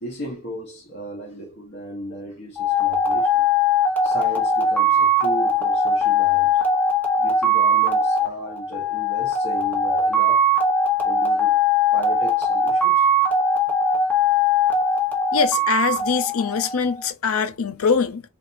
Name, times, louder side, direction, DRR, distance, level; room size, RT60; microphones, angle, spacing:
voice 1, 0.0-3.4 4.0-6.6 7.2-10.4 11.0-11.6 11.9-13.4, equal, 55° left, 1.4 m, -35 dB
sound 1, 2.6-17.0, left 1 dB, 10° left, 1.0 m, -20 dB
voice 2, 15.3-18.2, left 6 dB, 80° left, 0.6 m, -23 dB
3.8 x 3.7 x 2.7 m
head